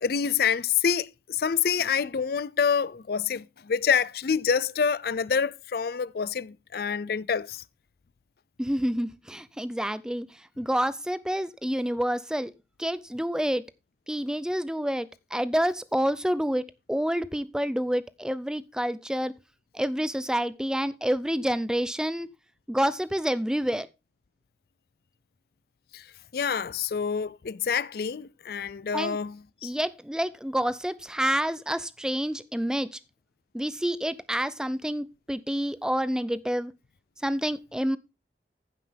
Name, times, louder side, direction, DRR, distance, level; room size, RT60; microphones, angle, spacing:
voice 1, 0.0-7.6 25.9-26.0 26.3-29.7, left 6 dB, 55° left, 0.4 m, -27 dB
voice 2, 8.6-12.5 12.8-13.6 14.1-19.3 19.7-22.3 22.7-23.9 28.9-29.2 29.6-33.0 33.5-36.7 37.2-38.0, equal, 5° right, 0.5 m, -28 dB
15.0 x 5.7 x 3.4 m
head